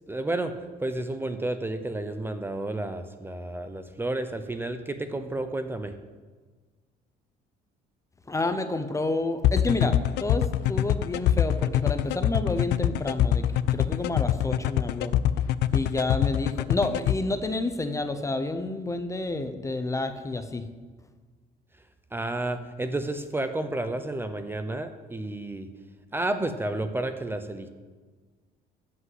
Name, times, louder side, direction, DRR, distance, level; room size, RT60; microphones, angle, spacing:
voice 1, 0.1-5.9 22.1-25.7 26.1-27.7, right 2 dB, 15° right, 8 dB, 0.8 m, -31 dB
voice 2, 8.3-15.1 15.7-20.6, left 2 dB, 20° left, 9 dB, 0.8 m, -29 dB
sound 1, 9.4-17.1, left 12 dB, 80° left, 0.5 m, -23 dB
13.5 x 5.4 x 8.0 m, 1.4 s
cardioid pair, 110°, 17 cm